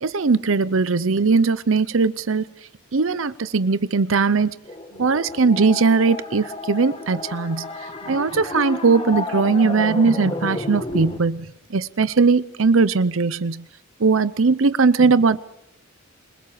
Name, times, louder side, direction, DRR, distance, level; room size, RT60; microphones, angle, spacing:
voice 1, 0.0-2.4 2.9-4.5 5.0-13.7 14.0-15.4, right 4 dB, 70° right, 15 dB, 0.7 m, -19 dB
sound 1, 4.6-11.2, left 2 dB, 30° left, 2.4 m, -31 dB
27.5 x 21.0 x 5.0 m, 0.82 s
head